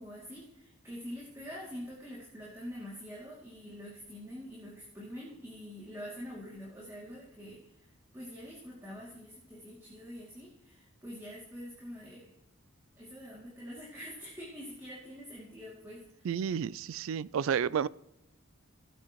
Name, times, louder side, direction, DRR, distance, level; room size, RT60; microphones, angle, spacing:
voice 1, 0.0-12.3 13.0-16.5, equal, 15° right, -6 dB, 2.6 m, -45 dB
voice 2, 16.2-17.9, right 7 dB, 70° right, 20 dB, 0.3 m, -31 dB
17.0 x 8.9 x 3.1 m, 0.86 s
head